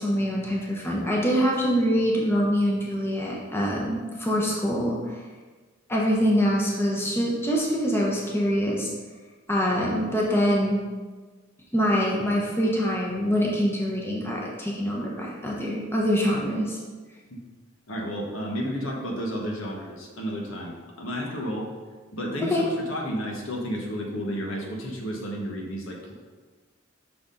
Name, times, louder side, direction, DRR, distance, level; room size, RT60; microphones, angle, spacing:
voice 1, 0.0-5.2 5.9-8.9 9.5-10.8 11.7-16.8 22.5-22.6, equal, 10° left, -3 dB, 0.9 m, -24 dB
voice 2, 17.9-21.7 22.1-26.1, equal, 75° left, -1 dB, 1.3 m, -32 dB
6.2 x 5.9 x 3.9 m, 1.4 s
head